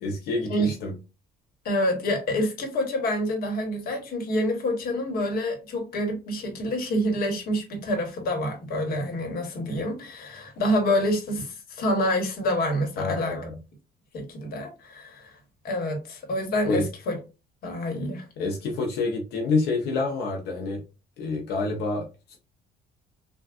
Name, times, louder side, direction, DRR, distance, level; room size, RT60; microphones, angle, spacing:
voice 1, 0.0-0.9 13.0-13.6 16.7-16.8 18.4-20.8 21.2-22.4, left 3 dB, 80° left, 0.7 m, -28 dB
voice 2, 1.6-13.4 14.1-15.3 15.6-17.2 17.6-18.3, equal, 60° left, 1.2 m, -27 dB
3.4 x 2.3 x 2.4 m
cardioid pair, 110°, 17 cm